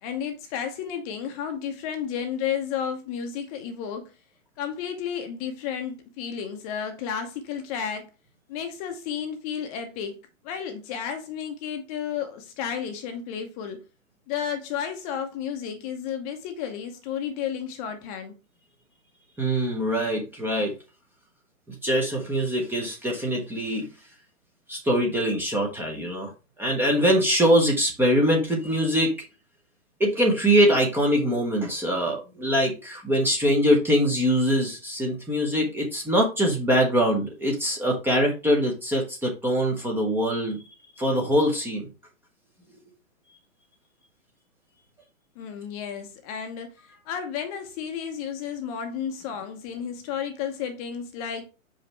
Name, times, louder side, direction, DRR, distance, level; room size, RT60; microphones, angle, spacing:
voice 1, 0.0-4.1 4.6-8.1 8.5-10.2 10.4-13.8 14.3-18.3 45.4-51.5, left 8 dB, 25° left, 0.8 m, -32 dB
voice 2, 19.4-20.7 21.7-23.9 24.7-26.3 26.6-29.2 30.0-40.6 41.0-41.9, equal, 5° right, 0.9 m, -23 dB
5.6 x 5.1 x 3.3 m
hypercardioid pair, 125°, 40 cm